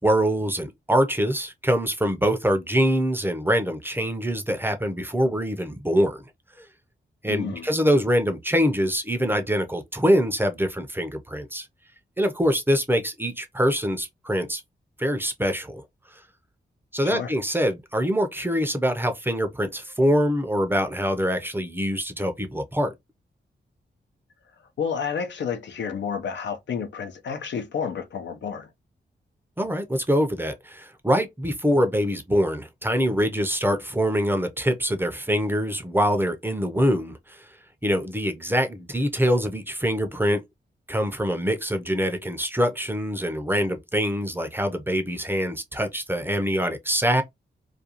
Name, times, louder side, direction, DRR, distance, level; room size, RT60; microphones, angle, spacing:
voice 1, 0.0-6.2 6.6-6.7 7.2-11.7 12.2-14.6 15.0-15.8 16.9-22.9 29.6-37.4 37.8-40.4 40.9-47.2, equal, 10° right, 0.5 m, -24 dB
voice 2, 7.3-7.7 17.0-17.3 24.8-28.7, left 6 dB, 75° left, 0.6 m, -30 dB
2.5 x 2.2 x 2.8 m
cardioid pair, 80°, 19 cm